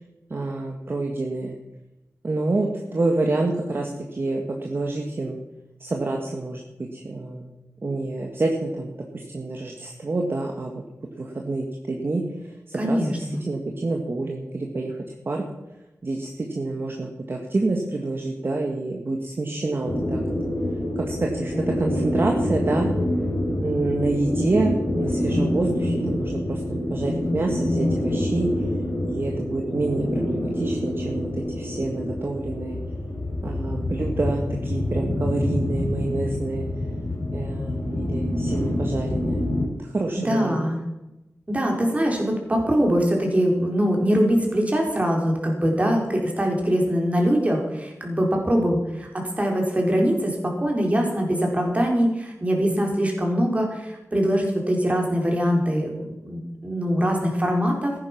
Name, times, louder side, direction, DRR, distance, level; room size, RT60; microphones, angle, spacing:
voice 1, 0.3-1.6 2.2-5.4 5.8-7.5 7.8-10.8 11.2-15.0 15.2-15.4 16.0-20.2 20.9-22.9 23.6-28.5 29.0-32.8 33.4-36.7 37.3-39.4 39.8-40.6, right 2 dB, 45° right, 1 dB, 1.7 m, -27 dB
voice 2, 12.8-13.4 40.2-40.8 41.5-57.9, equal, 25° right, 1 dB, 4.1 m, -23 dB
sound 1, 19.9-39.7, left 1 dB, 50° left, 3.5 m, -26 dB
14.5 x 10.5 x 6.0 m, 0.98 s
wide cardioid pair, 90°, 5 cm